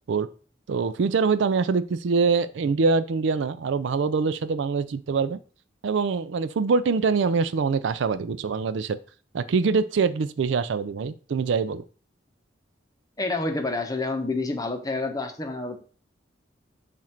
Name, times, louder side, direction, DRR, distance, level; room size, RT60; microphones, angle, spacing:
voice 1, 0.7-5.4 5.8-9.0 9.3-11.8, right 4 dB, 65° right, 13 dB, 0.4 m, -24 dB
voice 2, 13.2-15.8, left 2 dB, 20° left, 5 dB, 0.8 m, -28 dB
7.5 x 2.5 x 5.7 m, 0.41 s
head